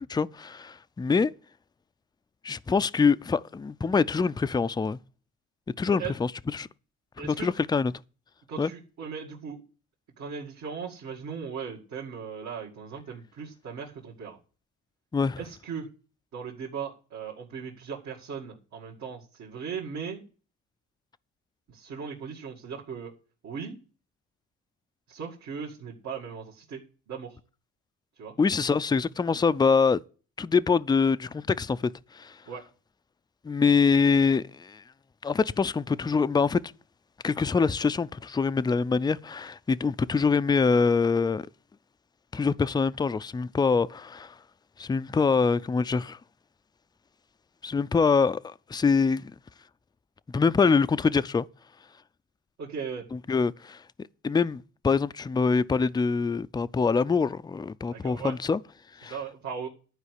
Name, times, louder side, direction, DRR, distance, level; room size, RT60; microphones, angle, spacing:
voice 1, 0.0-1.3 2.4-5.0 5.8-6.7 7.2-7.9 8.6-8.7 15.1-15.4 28.4-30.0 30.4-32.4 33.4-34.8 35.2-36.6 37.2-41.5 42.3-44.4 44.8-46.2 47.6-49.3 50.3-51.5 53.1-53.8 54.2-58.6 59.0-59.2, left 5 dB, 15° left, 0.4 m, -24 dB
voice 2, 7.2-7.5 8.5-9.6 10.2-14.4 15.4-15.9 16.3-20.2 21.7-23.1 23.4-23.8 25.1-27.4 28.2-28.3 32.5-32.6 52.6-53.1 57.9-58.4 59.1-59.7, right 6 dB, 70° right, 2.2 m, -38 dB
11.5 x 4.8 x 8.2 m
cardioid pair, 90°, 30 cm